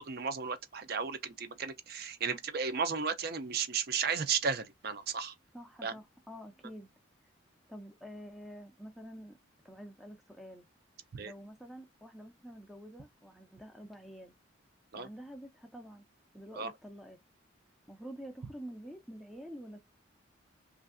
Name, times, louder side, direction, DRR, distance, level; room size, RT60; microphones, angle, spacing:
voice 1, 0.0-5.3 5.8-5.9 11.1-11.3 14.9-15.1 16.6-16.7, right 6 dB, 50° right, 0.5 m, -34 dB
voice 2, 5.5-6.9 7.7-9.4 9.6-10.7 11.2-14.3 14.9-16.1 16.3-17.2 17.9-19.8, equal, ahead, 0.4 m, -48 dB
3.1 x 2.5 x 2.5 m
head